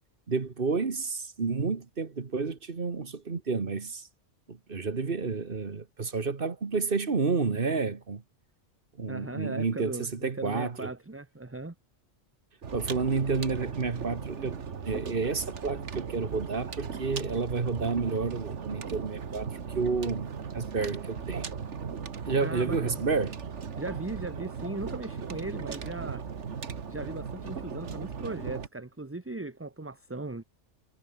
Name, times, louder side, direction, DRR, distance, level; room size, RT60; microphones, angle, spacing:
voice 1, 0.3-4.1 4.5-8.2 9.0-10.9 12.7-14.6 14.8-19.5 19.7-21.5 22.3-23.4, right 4 dB, 50° right, 1.7 m, -30 dB
voice 2, 9.1-11.7 22.4-23.0 23.8-26.2 26.9-30.4, right 2 dB, 10° right, 0.9 m, -38 dB
sound 1, 12.6-28.7, right 6 dB, 70° right, 1.8 m, -37 dB
omnidirectional pair, 1.2 m